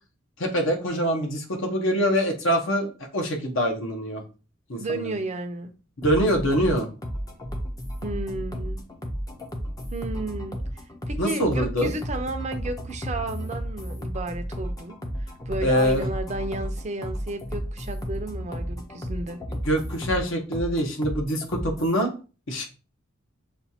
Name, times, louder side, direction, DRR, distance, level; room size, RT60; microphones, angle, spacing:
voice 1, 0.4-4.2 4.7-5.1 6.0-6.9 11.2-11.9 15.6-16.1 19.5-22.1 22.5-22.7, equal, 60° left, 0.9 m, -24 dB
voice 2, 4.8-5.7 8.0-8.8 9.9-19.4, right 2 dB, 30° right, 0.6 m, -33 dB
sound 1, 6.0-22.0, equal, 15° left, 0.6 m, -33 dB
6.9 x 2.4 x 2.8 m
head